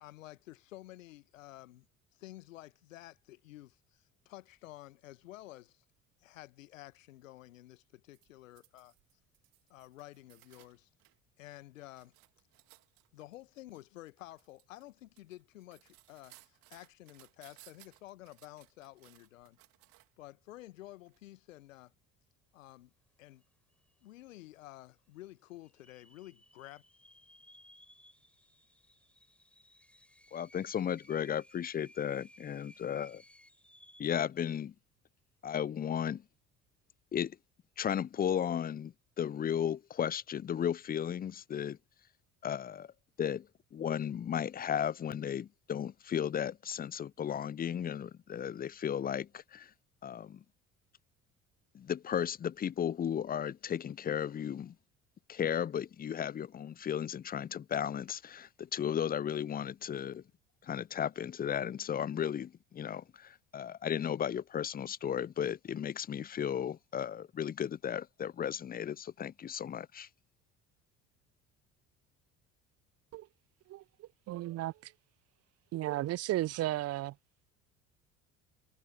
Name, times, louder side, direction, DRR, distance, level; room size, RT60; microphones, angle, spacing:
voice 1, 0.0-1.9 2.1-5.8 6.2-8.9 9.7-10.9 11.4-12.1 13.1-19.6 20.2-21.9 22.5-22.9 23.2-23.4 24.0-26.8, left 16 dB, 75° left, 1.3 m, -51 dB
sound 1, 8.1-11.2 11.6-20.2 21.0-21.2, right 22 dB, 60° right, 2.8 m, -62 dB
sound 2, 23.4-23.5 23.7-24.3 24.8-24.9 25.6-34.4, equal, 5° left, 4.1 m, -60 dB
voice 2, 30.3-33.2 34.0-34.7 35.4-36.2 37.1-37.4 37.8-41.8 42.4-42.9 43.2-43.5 43.7-49.7 50.0-50.4 51.7-54.7 55.3-60.2 60.6-70.1, left 9 dB, 25° left, 0.6 m, -35 dB
voice 3, 73.7-74.9 75.7-77.1, right 15 dB, 40° right, 0.6 m, -35 dB
figure-of-eight pair, 55°, 40 cm